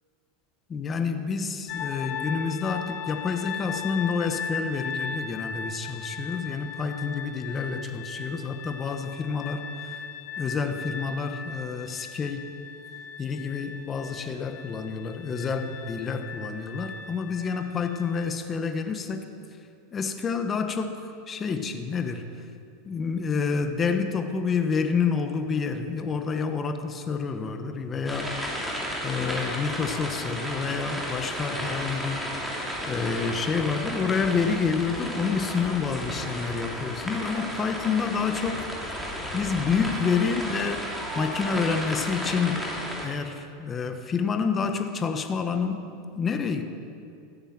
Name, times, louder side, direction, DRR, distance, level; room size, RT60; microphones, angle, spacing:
voice 1, 0.7-9.6 10.4-12.5 13.2-19.2 19.9-22.3 22.9-28.4 29.0-32.3 32.9-38.7 39.3-40.9 41.1-42.7 43.0-45.9 46.2-46.6, left 5 dB, 25° left, 6 dB, 1.1 m, -28 dB
sound 1, 1.7-18.3, left 6 dB, 45° left, 0.7 m, -38 dB
sound 2, 28.0-43.1, equal, ahead, 2.7 m, -33 dB
14.5 x 9.3 x 7.4 m, 2.4 s
supercardioid pair, 135°, 0 cm